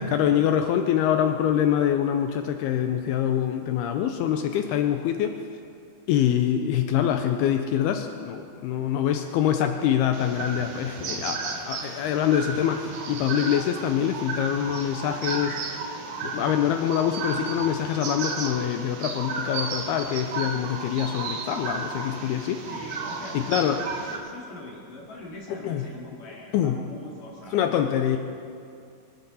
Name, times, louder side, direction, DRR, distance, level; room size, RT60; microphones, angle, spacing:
voice 1, 0.0-5.4 6.1-22.6 23.3-23.8 25.6-25.8 26.5-26.8 27.5-28.2, left 9 dB, 85° left, 6 dB, 2.3 m, -25 dB
sound 1, 10.1-24.2, right 4 dB, 65° right, 1.9 m, -33 dB
voice 2, 11.2-11.7 22.6-23.4 23.7-27.7 28.1-28.2, left 2 dB, 50° left, -4 dB, 3.7 m, -43 dB
24.5 x 13.0 x 4.1 m, 2.5 s
omnidirectional pair, 5.2 m